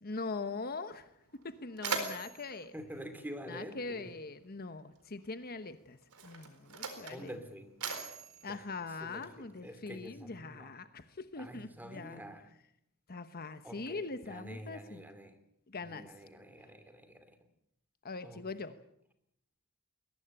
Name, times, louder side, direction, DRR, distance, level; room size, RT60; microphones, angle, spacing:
voice 1, 0.0-2.7 3.5-6.0 6.2-7.3 8.4-12.2 13.1-15.0 15.7-16.1 18.0-18.8, left 3 dB, 45° left, 11 dB, 1.1 m, -42 dB
Mechanisms, 0.9-1.0 1.3-4.0 5.0-5.2 6.0-9.6, right 4 dB, 90° right, 4.3 m, -42 dB
voice 2, 2.7-4.1 7.1-7.8 8.4-8.6 9.0-10.7 11.4-12.5 13.6-15.4 15.8-17.4 18.2-18.4, equal, 10° right, 9 dB, 2.7 m, -47 dB
21.5 x 18.0 x 8.9 m, 0.78 s
head